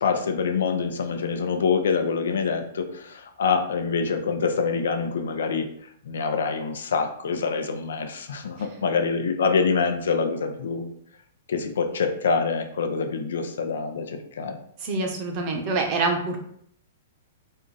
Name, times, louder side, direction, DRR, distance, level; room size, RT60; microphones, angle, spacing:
voice 1, 0.0-5.7 6.0-10.9 11.5-14.6, left 5 dB, 90° left, 6 dB, 0.7 m, -25 dB
voice 2, 14.8-16.4, right 3 dB, 35° right, 3 dB, 0.8 m, -26 dB
4.4 x 2.5 x 3.9 m, 0.67 s
hypercardioid pair, 165°, 0 cm